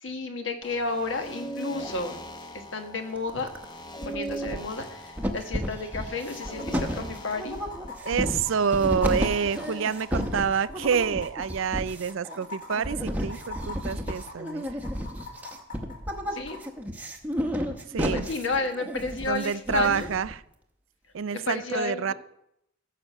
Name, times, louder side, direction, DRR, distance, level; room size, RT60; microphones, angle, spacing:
voice 1, 0.0-2.2 2.5-3.5 4.0-7.6 16.3-16.6 18.1-20.1 21.3-22.1, left 3 dB, 60° left, 5 dB, 1.4 m, -32 dB
sound 1, 0.6-10.4, right 1 dB, 20° left, 0.8 m, -40 dB
sound 2, 3.3-3.7 4.0-4.8 5.2-20.3, equal, 10° right, 0.9 m, -32 dB
sound 3, 6.3-16.6 18.3-18.4, left 3 dB, 40° left, 2.1 m, -43 dB
voice 2, 8.0-14.6 17.9-18.3 19.3-20.4 21.1-22.1, right 6 dB, 65° right, 17 dB, 0.4 m, -27 dB
14.5 x 6.0 x 6.5 m, 0.78 s
head